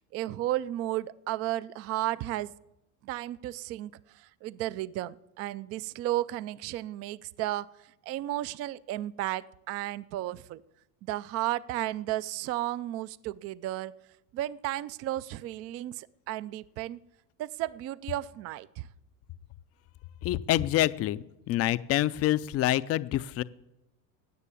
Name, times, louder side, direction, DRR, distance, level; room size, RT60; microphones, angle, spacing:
voice 1, 0.0-2.5 3.0-10.6 11.0-13.9 14.3-17.0 17.4-18.9, right 15 dB, 35° right, 19 dB, 0.4 m, -33 dB
voice 2, 20.2-23.4, left 14 dB, 35° left, 16 dB, 0.5 m, -27 dB
17.5 x 6.7 x 8.4 m, 0.91 s
supercardioid pair, 115°, 45 cm